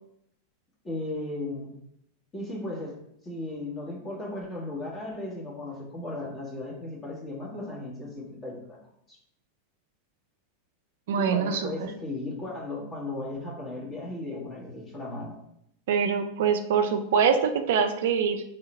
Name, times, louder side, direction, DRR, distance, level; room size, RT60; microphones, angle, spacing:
voice 1, 0.8-1.7 2.3-2.9 3.2-8.8 9.1-9.2 11.1-15.4, left 2 dB, 25° left, -3 dB, 1.7 m, -36 dB
voice 2, 11.1-11.7 15.9-18.4, right 6 dB, 60° right, 7 dB, 0.4 m, -24 dB
3.6 x 3.4 x 4.3 m, 0.74 s
figure-of-eight pair, 90°, 0 cm